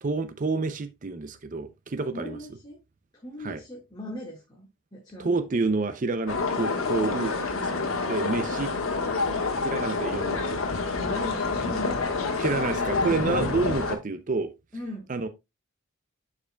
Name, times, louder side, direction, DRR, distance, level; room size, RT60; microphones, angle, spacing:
voice 1, 0.0-2.4 3.4-3.6 5.2-7.8 8.1-8.7 9.3-10.6 12.4-14.5 15.1-15.3, right 3 dB, 40° right, 0.5 m, -29 dB
voice 2, 2.1-2.8 3.1-5.3 11.1-12.6 14.7-15.1, left 1 dB, 20° left, 1.8 m, -39 dB
sound 1, 6.3-14.0, left 3 dB, 80° left, 1.4 m, -28 dB
11.0 x 4.9 x 2.3 m
head